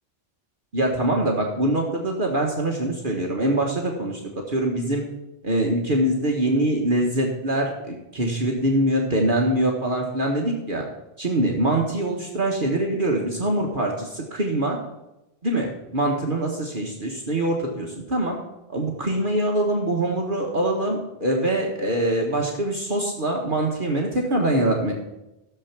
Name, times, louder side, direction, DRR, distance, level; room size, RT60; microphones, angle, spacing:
voice 1, 0.7-4.2 4.5-5.0 5.4-10.8 11.2-14.8 15.4-18.4 18.7-24.9, right 1 dB, 45° right, 0 dB, 1.5 m, -24 dB
14.0 x 6.9 x 5.9 m, 0.96 s
omnidirectional pair, 1.3 m